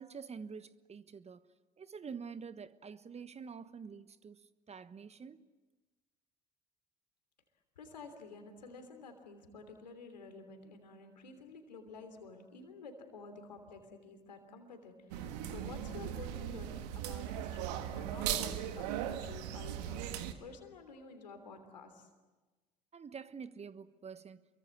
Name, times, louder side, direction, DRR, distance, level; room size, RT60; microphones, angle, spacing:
voice 1, 0.0-5.4 22.9-24.4, right 6 dB, 30° right, 1.2 m, -47 dB
voice 2, 7.8-22.1, left 4 dB, 85° left, 3.2 m, -51 dB
sound 1, 15.1-20.3, right 10 dB, 70° right, 1.7 m, -38 dB
28.5 x 23.5 x 8.5 m
figure-of-eight pair, 55°, 21 cm